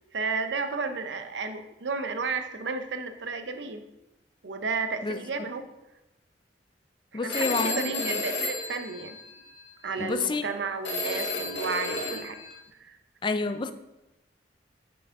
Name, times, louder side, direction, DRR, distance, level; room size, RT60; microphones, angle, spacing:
voice 1, 0.1-3.8 4.4-5.7 7.1-9.2 9.8-12.4 12.8-13.0, right 4 dB, 90° right, 9 dB, 0.7 m, -32 dB
voice 2, 7.1-8.2 10.0-10.5 13.2-13.7, left 4 dB, 25° left, 10 dB, 0.4 m, -29 dB
Telephone, 7.3-9.6 10.8-12.6, left 2 dB, 90° left, 1.6 m, -32 dB
6.9 x 6.1 x 3.7 m, 0.96 s
head